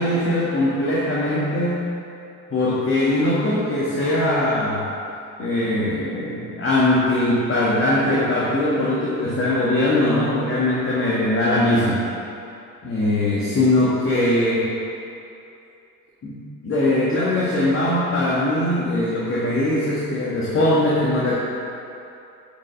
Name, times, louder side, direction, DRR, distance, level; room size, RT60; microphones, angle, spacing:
voice 1, 0.0-1.9 2.5-4.9 5.4-12.0 12.8-14.7 16.2-16.4 16.6-21.4, left 1 dB, 30° left, -7 dB, 1.9 m, -21 dB
8.8 x 5.3 x 7.8 m, 2.7 s
figure-of-eight pair, 60°, 45 cm